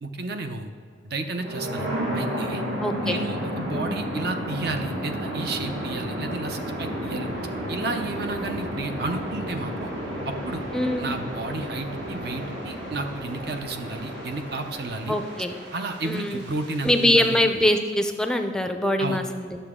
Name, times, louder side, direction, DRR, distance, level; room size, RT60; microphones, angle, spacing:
voice 1, 0.0-0.7 1.0-2.6 3.0-7.3 7.7-9.9 10.3-10.6 11.0-15.2 15.7-17.4 19.0-19.2, right 3 dB, 55° right, 6 dB, 0.7 m, -32 dB
sound 1, 1.3-17.2, equal, 70° right, 1.9 m, -32 dB
voice 2, 2.8-3.2 3.7-4.0 10.7-11.1 15.1-15.5 16.0-16.4 16.8-19.6, left 1 dB, 5° left, 5 dB, 0.4 m, -23 dB
9.9 x 6.8 x 3.7 m, 2.1 s
head